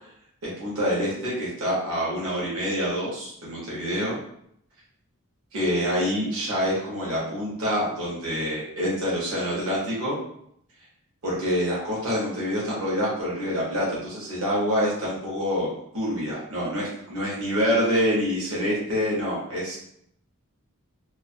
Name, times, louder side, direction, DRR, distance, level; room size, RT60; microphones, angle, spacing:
voice 1, 0.4-4.2 5.5-10.2 11.2-19.8, equal, 70° right, -6 dB, 0.8 m, -26 dB
2.4 x 2.4 x 2.5 m, 0.72 s
head